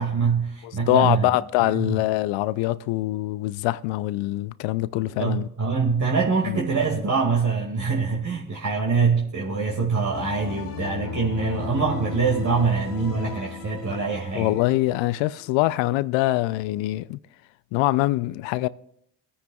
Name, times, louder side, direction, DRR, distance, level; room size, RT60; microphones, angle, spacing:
voice 1, 0.0-1.3 1.8-2.0 5.1-14.5, right 5 dB, 40° right, 2.2 m, -24 dB
voice 2, 0.6-5.5 6.4-6.6 14.3-17.2 17.7-18.7, left 17 dB, 75° left, 0.6 m, -24 dB
sound 1, 10.1-15.5, left 6 dB, 90° left, 1.2 m, -36 dB
22.0 x 9.7 x 2.4 m
hypercardioid pair, 60°, 46 cm